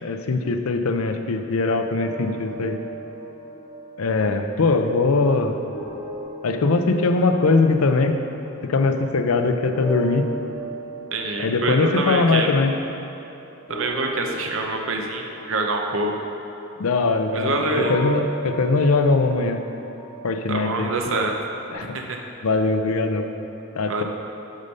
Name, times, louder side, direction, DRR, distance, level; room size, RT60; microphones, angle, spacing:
voice 1, 0.0-2.8 4.0-5.6 6.4-8.2 8.6-10.3 11.4-12.7 16.8-19.6 20.2-20.9 21.7-22.0 22.4-23.3 23.7-24.0, left 3 dB, 85° left, 6 dB, 0.5 m, -21 dB
under the stars loop, 2.0-9.3 9.7-17.3 17.7-21.7, right 2 dB, 65° left, 1.8 m, -37 dB
voice 2, 11.1-12.5 13.7-16.1 17.3-18.0 20.5-21.3 21.9-22.2 23.9-24.0, right 2 dB, 70° right, 2 dB, 0.8 m, -25 dB
7.3 x 5.2 x 5.4 m, 2.9 s
head